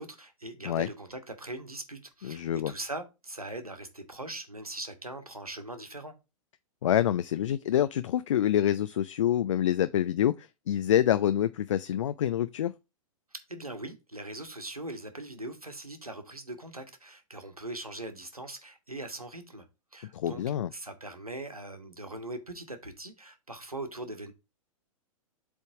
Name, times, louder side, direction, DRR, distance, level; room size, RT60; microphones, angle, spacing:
voice 1, 0.0-6.1 13.3-19.7 19.9-20.4 20.7-24.3, right 1 dB, 90° right, 1.2 m, -41 dB
voice 2, 2.2-2.7 6.8-12.7 20.1-20.7, left 11 dB, 60° left, 0.4 m, -26 dB
8.0 x 3.5 x 3.6 m
figure-of-eight pair, 105°, 18 cm